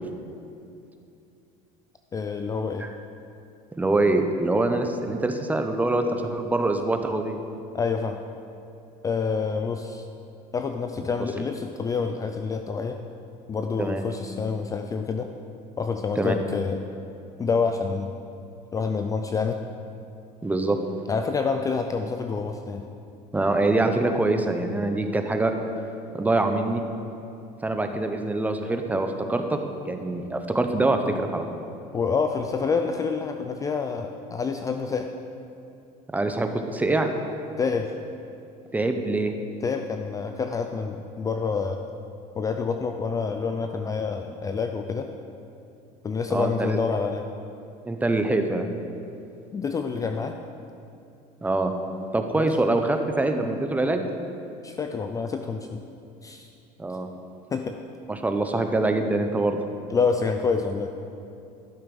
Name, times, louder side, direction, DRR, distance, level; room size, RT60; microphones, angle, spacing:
voice 1, 2.1-2.9 7.7-8.2 9.0-10.1 10.5-13.0 13.5-15.3 15.8-16.8 17.4-18.1 18.7-19.6 21.1-22.8 31.9-35.1 37.6-37.9 39.6-41.8 42.4-45.1 46.0-47.3 49.5-50.4 52.3-52.5 54.6-55.8 56.2-56.5 57.5-57.8 59.9-60.9, left 5 dB, 20° left, 6 dB, 0.4 m, -27 dB
voice 2, 3.8-7.4 13.8-14.0 16.2-16.3 20.4-20.8 23.3-25.5 26.1-26.8 27.6-29.6 29.9-31.6 36.1-37.1 38.7-39.3 46.3-46.8 47.8-48.7 51.4-51.7 52.1-54.1 56.8-57.1 58.1-59.6, right 2 dB, 10° right, 6 dB, 0.7 m, -24 dB
12.5 x 6.6 x 5.3 m, 2.7 s
cardioid pair, 135°, 16 cm